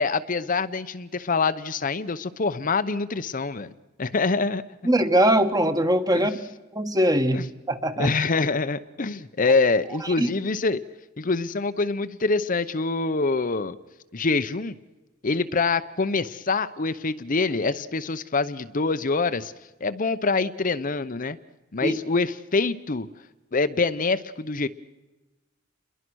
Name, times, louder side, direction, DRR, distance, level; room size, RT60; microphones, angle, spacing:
voice 1, 0.0-3.7 4.0-4.6 6.1-6.3 7.3-7.4 8.0-10.8 11.2-13.8 14.1-14.7 15.2-19.5 19.8-21.4 21.7-23.1 23.5-24.7, left 3 dB, 45° left, 11 dB, 0.8 m, -25 dB
voice 2, 4.8-6.3 6.7-8.1 10.2-10.3 21.8-22.0, right 1 dB, 20° right, 8 dB, 1.6 m, -21 dB
29.0 x 22.5 x 6.3 m, 1.1 s
head